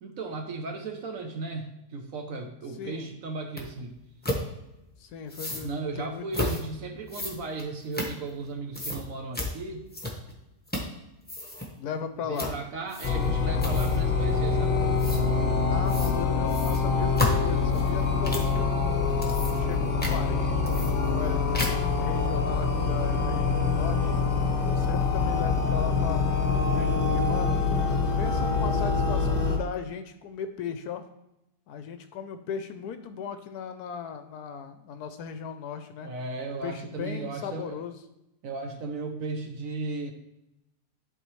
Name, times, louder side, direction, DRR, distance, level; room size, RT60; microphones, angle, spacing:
voice 1, 0.0-4.0 5.6-9.9 12.2-14.8 36.0-37.8 38.4-40.1, right 3 dB, 60° right, 5 dB, 1.0 m, -35 dB
voice 2, 2.8-3.1 5.0-6.3 11.8-12.6 15.7-19.1 19.5-21.5 22.0-24.1 24.6-27.6 28.2-31.1 31.7-36.1 36.4-38.0, left 7 dB, 70° left, 9 dB, 1.0 m, -37 dB
sound 1, 3.6-3.7 4.2-4.4 5.3-5.7 6.3-6.6 7.1-8.5 8.7-9.0 9.3-9.5 9.9-10.3 10.7-11.0 11.2-11.7 12.4-12.6 12.9-13.3 13.6-14.0 15.0-15.2 15.9-16.2 16.5-18.5 19.0-19.7 20.0-20.2 20.7-21.3 21.5-21.9, left 1 dB, 10° left, 0.8 m, -32 dB
sound 2, 13.0-29.6, left 4 dB, 45° left, 0.8 m, -25 dB
11.5 x 4.0 x 3.1 m, 0.90 s
omnidirectional pair, 1.8 m